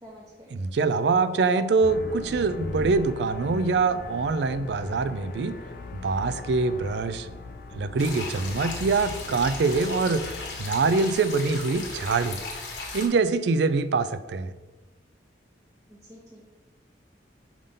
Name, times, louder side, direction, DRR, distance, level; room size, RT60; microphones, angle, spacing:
voice 1, 0.0-0.6 15.9-16.4, equal, 20° right, -5 dB, 0.7 m, -48 dB
voice 2, 0.5-5.6 6.0-7.3 7.7-10.3 10.6-12.4 12.9-14.5, right 4 dB, 65° right, 12 dB, 0.4 m, -24 dB
sound 1, 1.8-13.0, left 3 dB, 50° left, 0.5 m, -40 dB
sound 2, 8.0-13.1, left 3 dB, 70° left, 1.2 m, -37 dB
5.4 x 3.6 x 5.2 m, 1.2 s
head